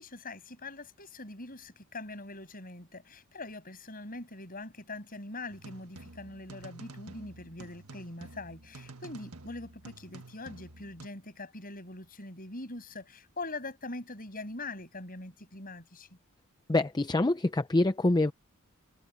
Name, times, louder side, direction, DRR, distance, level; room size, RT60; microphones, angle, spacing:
voice 1, 0.0-16.1, left 2 dB, 40° left, 7.2 m, -43 dB
sound 1, 5.5-11.1, right 3 dB, 75° right, 1.6 m, -49 dB
voice 2, 16.7-18.3, left 2 dB, 20° left, 0.5 m, -25 dB
head